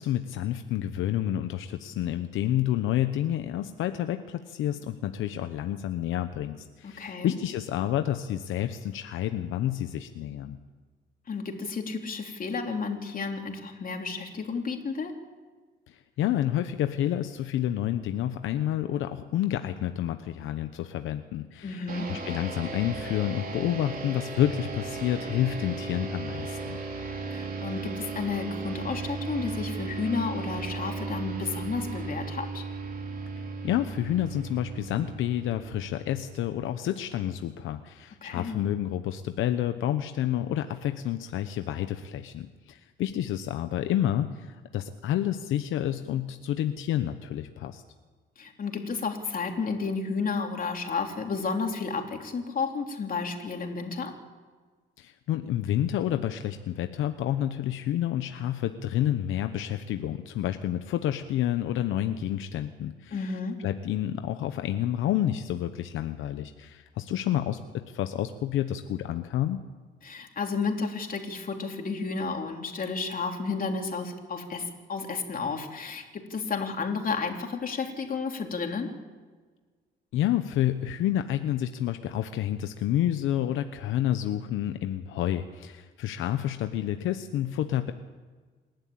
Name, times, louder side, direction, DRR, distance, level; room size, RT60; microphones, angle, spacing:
voice 1, 0.0-10.6 15.9-26.8 33.6-47.8 55.0-63.4 63.6-69.6 80.1-87.9, left 11 dB, 85° left, 8 dB, 1.0 m, -29 dB
voice 2, 6.8-7.3 11.3-15.1 21.6-22.1 27.3-32.6 38.2-38.6 48.4-54.1 63.1-63.6 70.0-78.9, left 4 dB, 45° left, 3 dB, 3.4 m, -32 dB
sound 1, 21.9-36.7, right 4 dB, 45° right, 3.6 m, -36 dB
28.0 x 11.5 x 8.8 m, 1.4 s
cardioid pair, 90°, 20 cm